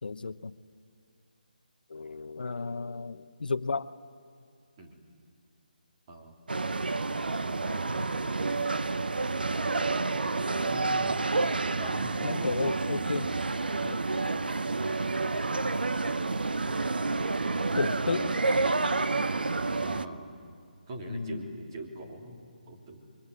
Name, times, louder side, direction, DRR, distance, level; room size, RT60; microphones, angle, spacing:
voice 1, 0.0-0.6 1.9-3.9 12.2-13.3 13.8-14.0 17.7-18.4 21.1-21.5, left 4 dB, 75° left, 13 dB, 0.9 m, -33 dB
sound 1, 6.5-20.0, right 3 dB, 85° right, 1.0 m, -29 dB
voice 2, 7.6-8.1 10.1-11.2 11.8-12.6 19.7-20.3 20.9-23.2, right 1 dB, 30° right, 2 dB, 3.3 m, -42 dB
25.0 x 23.5 x 9.7 m, 2.5 s
hypercardioid pair, 165°, 5 cm